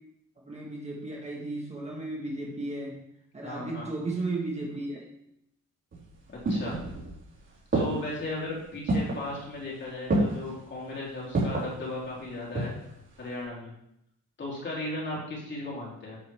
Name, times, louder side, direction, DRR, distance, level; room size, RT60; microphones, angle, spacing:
voice 1, 0.4-3.0 3.3-5.0, right 2 dB, 20° right, -2 dB, 1.5 m, -34 dB
voice 2, 3.4-3.9 6.5-6.8 7.7-12.7 13.2-13.7 14.4-16.2, left 2 dB, 35° left, -5 dB, 3.5 m, -36 dB
sound 1, 5.9-7.3 7.7-8.3 8.9-9.3 10.1-10.5 11.3-11.8 12.3-12.9 13.2-13.3, right 2 dB, 35° right, 4.2 m, -28 dB
11.0 x 7.9 x 3.6 m, 0.77 s
wide cardioid pair, 170°, 33 cm